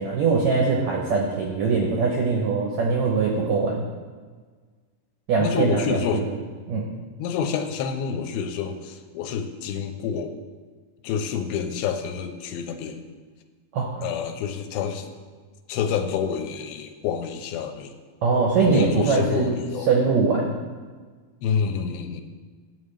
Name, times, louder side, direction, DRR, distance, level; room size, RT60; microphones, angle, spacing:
voice 1, 0.0-3.8 5.3-6.2 6.7-6.9 13.7-14.0 18.2-19.5 19.9-20.5, right 4 dB, 85° right, -1 dB, 1.6 m, -22 dB
voice 2, 5.4-6.2 7.2-10.3 11.0-13.1 14.0-15.1 15.7-17.9 18.6-19.9 21.4-22.2, left 7 dB, 85° left, 7 dB, 2.4 m, -28 dB
11.0 x 7.3 x 3.2 m, 1.5 s
omnidirectional pair, 4.3 m